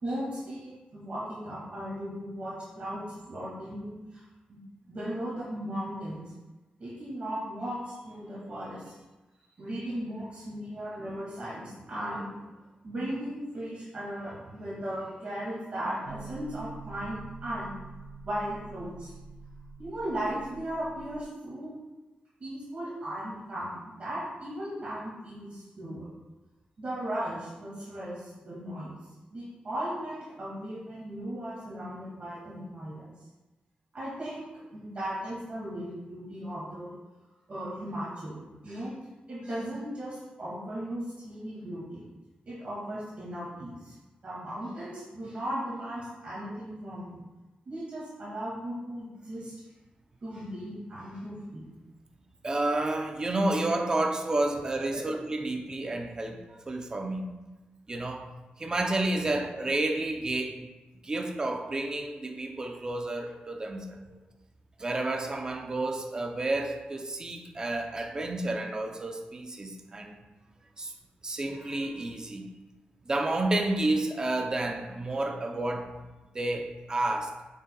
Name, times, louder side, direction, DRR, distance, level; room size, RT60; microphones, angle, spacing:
voice 1, 0.0-4.2 4.5-4.6 4.9-6.2 6.8-8.9 9.6-12.3 12.8-17.7 18.2-19.1 19.8-21.7 22.4-26.1 26.8-28.9 29.3-33.1 33.9-37.0 37.5-38.9 39.3-42.1 42.5-43.9 44.2-47.2 47.7-49.5 50.2-51.6 54.9-55.0, right 1 dB, 40° right, -8 dB, 2.2 m, -37 dB
sound 1, 16.1-21.2, right 4 dB, 75° right, 0.4 m, -46 dB
voice 2, 52.4-57.3 57.9-58.3 58.6-60.7 61.0-64.0 64.8-70.2 70.8-70.9 71.2-72.5 73.0-76.0 76.3-77.3, right 2 dB, 25° right, 3 dB, 0.7 m, -30 dB
8.9 x 5.5 x 2.3 m, 1.1 s
wide cardioid pair, 145°, 3 cm